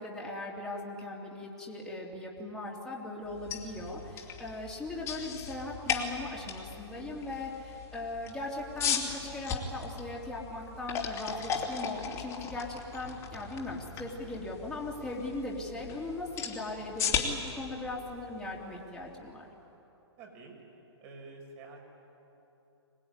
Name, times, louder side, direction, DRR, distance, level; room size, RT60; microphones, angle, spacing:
voice 1, 0.0-19.5, left 2 dB, 5° left, -5 dB, 3.3 m, -39 dB
sound 1, 3.3-19.2, left 7 dB, 20° left, 2.9 m, -37 dB
voice 2, 20.2-20.6 21.0-21.8, right 3 dB, 35° right, 2 dB, 6.1 m, -48 dB
25.0 x 20.0 x 10.0 m, 3.0 s
hypercardioid pair, 140°, 15 cm